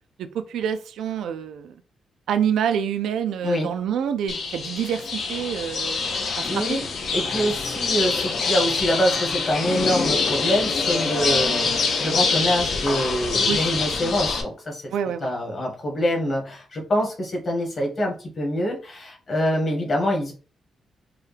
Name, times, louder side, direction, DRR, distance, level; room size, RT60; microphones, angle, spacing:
voice 1, 0.5-1.7 2.3-5.0 5.3-6.8 13.4-13.7 14.9-15.3, right 8 dB, 90° right, 9 dB, 0.5 m, -27 dB
sound 1, 4.3-14.4, left 4 dB, 55° left, 0.8 m, -25 dB
voice 2, 5.9-6.9 7.1-14.9 15.2-20.3, equal, 35° left, 0 dB, 1.5 m, -25 dB
4.6 x 2.3 x 3.3 m, 0.36 s
wide cardioid pair, 160°, 0 cm